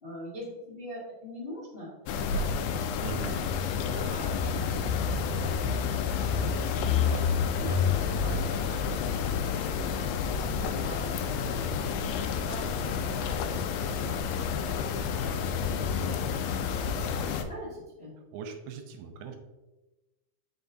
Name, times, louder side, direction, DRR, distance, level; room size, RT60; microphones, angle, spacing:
voice 1, 0.0-1.9 2.2-2.4 3.0-3.1 3.9-9.8 10.5-18.1, equal, 65° left, -7 dB, 0.5 m, -44 dB
sound 1, 2.1-17.5, left 6 dB, 80° left, 2.1 m, -29 dB
voice 2, 3.0-3.4 18.3-19.4, right 6 dB, 80° right, 6 dB, 2.6 m, -40 dB
6.8 x 5.8 x 2.7 m, 1.1 s
omnidirectional pair, 4.5 m